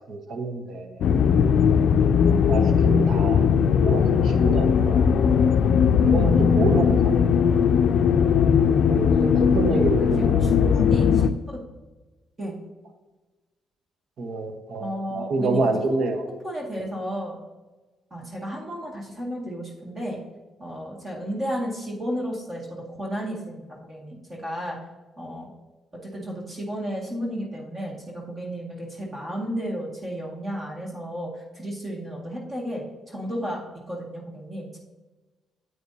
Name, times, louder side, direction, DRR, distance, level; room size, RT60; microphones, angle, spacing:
voice 1, 0.1-0.9 2.5-3.5 3.8-5.0 6.0-7.2 8.9-10.8 14.2-16.2, right 3 dB, 65° right, 6 dB, 1.1 m, -27 dB
sound 1, 1.0-11.3, left 7 dB, 70° left, 0.4 m, -19 dB
voice 2, 10.0-11.6 12.4-12.5 14.8-15.6 15.9-16.0 16.4-17.4 18.1-20.2 20.6-24.8 25.2-25.5 26.0-33.6 33.9-34.8, equal, 30° right, -2 dB, 2.0 m, -33 dB
9.3 x 8.2 x 2.8 m, 1.2 s
cardioid pair, 90°, 0 cm